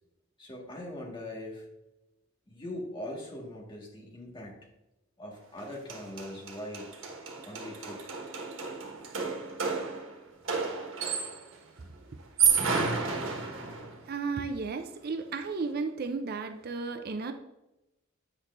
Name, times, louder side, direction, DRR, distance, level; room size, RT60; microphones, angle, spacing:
voice 1, 0.4-1.7 2.5-4.7 5.2-6.9 7.4-8.1, left 1 dB, 25° left, -1 dB, 1.7 m, -41 dB
sound 1, 5.6-5.7 5.9-11.5 12.2-14.0, right 6 dB, 85° right, 1.4 m, -31 dB
voice 2, 14.1-17.3, right 4 dB, 50° right, 7 dB, 0.6 m, -34 dB
8.7 x 6.3 x 2.6 m, 0.96 s
head